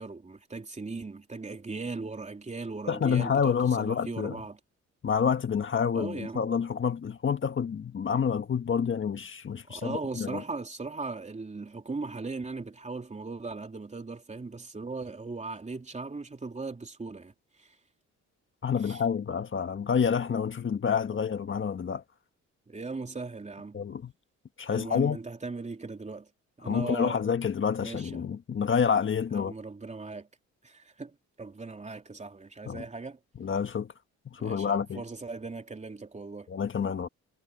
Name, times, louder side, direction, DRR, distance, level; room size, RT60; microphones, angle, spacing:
voice 1, 0.0-4.6 5.9-6.5 9.7-17.3 17.6-17.7 18.8-19.0 22.7-23.8 24.7-26.3 26.6-27.2 27.8-28.3 29.3-30.3 30.6-33.2 34.4-36.5, right 3 dB, 25° right, 3.4 m, -38 dB
voice 2, 2.9-4.4 5.0-10.4 18.6-22.0 23.7-24.1 24.6-25.2 26.6-29.5 32.6-32.8 33.4-33.9 34.2-35.0 36.5-37.1, left 7 dB, 40° left, 1.6 m, -28 dB
cardioid pair, 90°, 30 cm